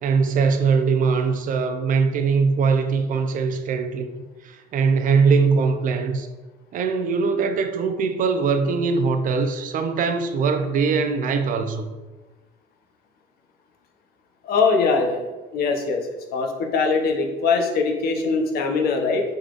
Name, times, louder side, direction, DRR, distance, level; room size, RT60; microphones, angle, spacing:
voice 1, 0.0-4.1 4.4-6.3 6.7-11.9, right 5 dB, 55° right, 7 dB, 0.5 m, -21 dB
voice 2, 14.4-15.2 15.5-16.0 16.3-19.2, left 4 dB, 65° left, 3 dB, 0.8 m, -22 dB
4.9 x 3.9 x 2.5 m, 1.2 s
cardioid pair, 110°, 17 cm